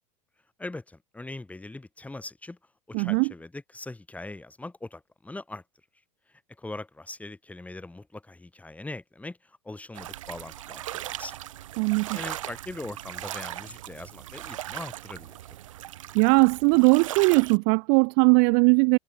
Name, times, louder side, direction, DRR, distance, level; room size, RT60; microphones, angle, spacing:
voice 1, 0.6-2.6 2.9-5.6 6.6-11.4 12.1-15.4, left 2 dB, 10° left, 3.0 m, -41 dB
voice 2, 2.9-3.3 11.8-12.2 16.1-19.0, right 40 dB or more, 45° right, 0.4 m, -20 dB
sound 1, 9.9-17.6, right 13 dB, 65° right, 3.6 m, -38 dB
figure-of-eight pair, 80°, 18 cm